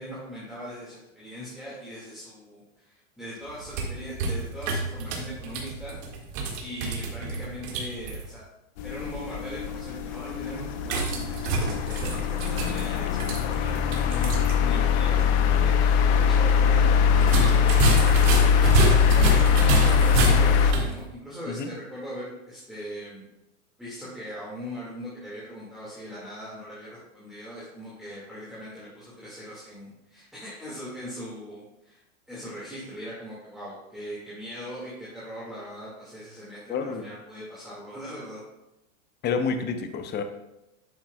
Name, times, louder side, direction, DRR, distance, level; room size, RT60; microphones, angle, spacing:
voice 1, 0.0-6.0 6.6-8.4 8.8-18.8 19.1-23.3 23.8-32.0 32.3-38.4, equal, ahead, -8 dB, 2.0 m, -40 dB
sound 1, 3.5-8.2 10.8-14.6 14.9-15.0 17.2-20.9, right 3 dB, 50° right, 2.0 m, -28 dB
sound 2, 8.8-20.7, left 7 dB, 55° left, 0.9 m, -22 dB
voice 2, 36.7-37.1 39.2-40.2, left 5 dB, 25° left, 7 dB, 0.8 m, -29 dB
9.5 x 7.1 x 2.3 m, 0.92 s
hypercardioid pair, 125°, 42 cm